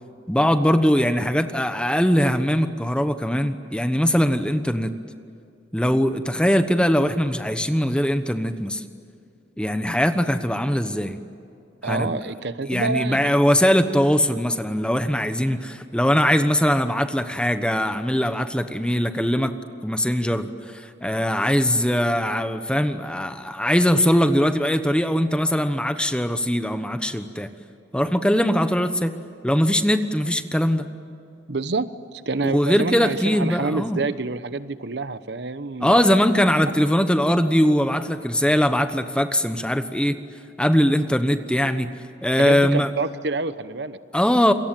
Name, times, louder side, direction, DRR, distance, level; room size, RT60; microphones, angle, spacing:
voice 1, 0.3-4.9 5.7-8.8 9.6-11.2 11.8-12.1 12.6-19.5 19.8-27.5 27.9-29.1 29.4-30.9 32.4-34.0 35.8-40.2 40.6-41.9 42.2-42.9 44.1-44.5, equal, 5° left, 9 dB, 1.1 m, -21 dB
voice 2, 11.8-13.3 31.5-36.5 42.4-44.0, right 3 dB, 65° right, 13 dB, 0.9 m, -28 dB
28.0 x 23.0 x 9.1 m, 2.5 s
head